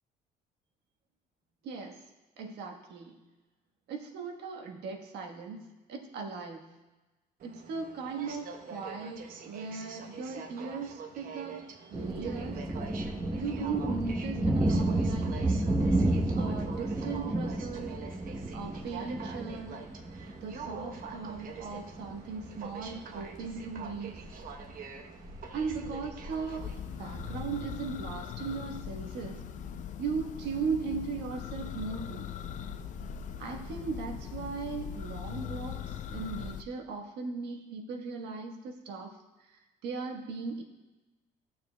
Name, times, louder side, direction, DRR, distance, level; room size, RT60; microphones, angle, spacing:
voice 1, 1.6-2.0 2.4-3.2 3.9-5.6 5.9-6.6 7.4-12.7 13.3-15.5 16.3-18.0 18.5-19.8 20.4-24.2 25.5-26.7 27.0-29.4 30.0-32.3 33.4-40.6, right 5 dB, 80° right, 2 dB, 1.3 m, -38 dB
Aircraft, 7.4-26.8, right 5 dB, 55° right, 0.9 m, -45 dB
sound 1, 11.9-28.0, right 1 dB, 20° right, 0.9 m, -33 dB
Church bell, 26.3-36.6, left 8 dB, 45° left, 0.4 m, -40 dB
14.5 x 7.0 x 2.2 m, 1.1 s
cardioid pair, 110°, 17 cm